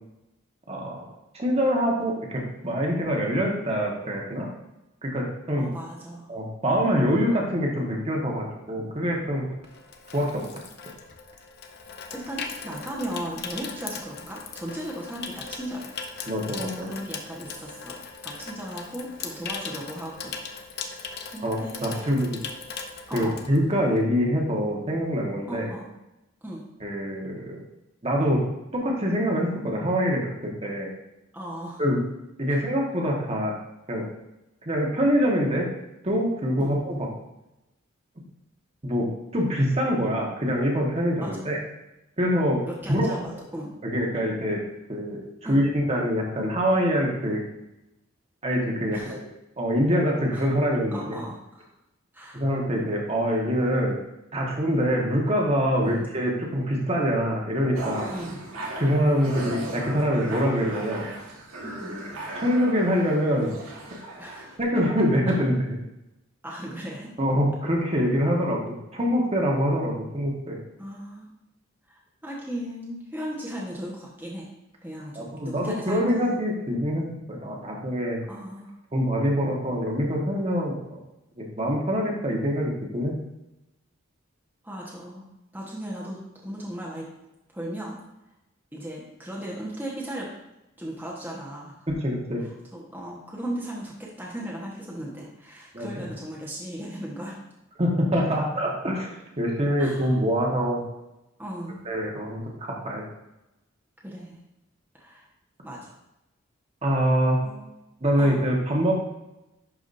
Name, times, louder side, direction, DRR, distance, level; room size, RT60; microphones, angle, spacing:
voice 1, 0.7-1.1 1.3-4.5 5.0-5.7 6.3-9.4 10.1-10.4 16.3-16.9 21.4-22.4 23.1-25.7 26.8-27.6 28.0-28.4 28.7-30.3 30.6-30.9 31.8-32.0 32.4-33.5 33.9-34.0 34.7-35.6 36.0-37.0 38.8-39.1 39.3-41.6 42.2-42.6 42.9-43.1 43.8-44.6 44.9-45.2 45.5-47.4 48.4-49.2 49.6-51.2 52.3-53.9 54.3-58.1 58.8-61.1 62.3-63.5 64.6-65.5 67.2-70.6 75.1-77.0 77.3-78.2 78.9-81.0 81.4-83.1 91.9-92.4 95.7-96.0 97.8-100.8 101.8-103.0 106.8-107.4 108.0-108.9, equal, 30° right, -1 dB, 1.3 m, -25 dB
voice 2, 5.6-6.3 12.1-15.9 16.8-20.8 21.3-22.1 23.1-23.4 25.5-25.9 26.4-26.6 31.3-31.8 32.5-32.6 36.6-36.8 41.2-41.5 42.7-43.7 45.4-45.6 48.9-49.2 50.3-50.4 50.9-51.7 52.1-52.4 55.8-56.1 58.1-58.4 61.6-62.0 64.2-64.6 65.3-65.4 66.4-67.1 70.8-71.3 71.9-74.5 74.8-76.4 78.3-78.7 84.6-85.2 85.5-87.1 87.5-88.0 88.7-90.3 90.8-91.9 92.4-97.4 99.8-100.1 101.4-101.8 104.0-104.4 104.9-105.3 105.6-105.9 107.4-107.7 108.2-108.4, right 1 dB, 10° right, -4 dB, 1.2 m, -37 dB
Water tap faucet / Sink (filling or washing), 9.1-24.2 24.5-24.7, left 5 dB, 50° left, 0.7 m, -39 dB
sound 1, 57.7-64.6, right 1 dB, 85° right, 1.7 m, -37 dB
11.0 x 4.8 x 2.6 m, 0.93 s
head